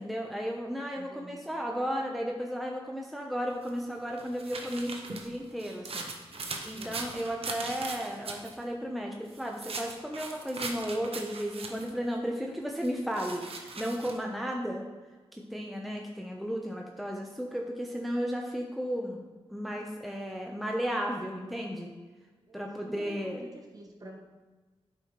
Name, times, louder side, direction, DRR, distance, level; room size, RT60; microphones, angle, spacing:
voice 1, 0.0-6.1 6.6-14.9 15.3-21.9 22.5-23.5, equal, ahead, 0 dB, 0.9 m, -34 dB
voice 2, 1.0-1.5 6.7-7.1 22.5-24.2, right 1 dB, 35° right, -1 dB, 1.5 m, -49 dB
sound 1, 3.7-8.5 9.3-12.0 12.8-14.2, right 3 dB, 70° right, 0.9 m, -40 dB
8.8 x 5.7 x 3.1 m, 1.3 s
cardioid pair, 60°, 10 cm